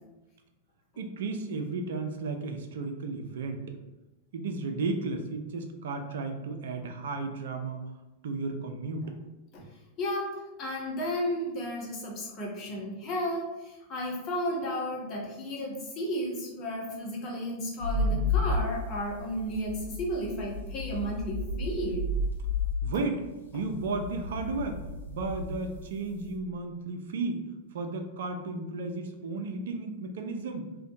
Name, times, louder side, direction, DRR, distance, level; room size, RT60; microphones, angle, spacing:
voice 1, 1.0-3.8 4.3-7.8 8.2-9.2 22.8-23.2 23.5-24.8 25.1-27.4 27.7-30.7, right 3 dB, 60° right, 5 dB, 0.3 m, -34 dB
voice 2, 10.0-22.0, equal, 35° left, -3 dB, 0.8 m, -33 dB
sound 1, 17.8-26.3, left 2 dB, 80° left, 0.6 m, -32 dB
2.5 x 2.1 x 2.6 m, 1.0 s
figure-of-eight pair, 90°, 0 cm